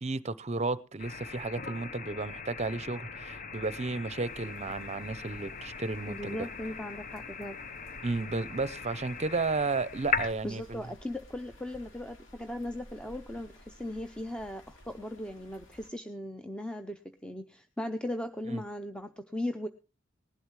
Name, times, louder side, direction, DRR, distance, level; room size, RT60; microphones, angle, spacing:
voice 1, 0.0-6.5 8.0-10.8 18.5-18.6, right 3 dB, 35° right, 0.7 m, -33 dB
sound 1, 1.0-10.3, left 5 dB, 45° left, 0.9 m, -39 dB
sound 2, 4.2-15.9, equal, 70° left, 3.0 m, -55 dB
voice 2, 6.1-7.6 10.4-19.7, left 1 dB, 5° left, 0.6 m, -38 dB
19.5 x 11.5 x 3.2 m
head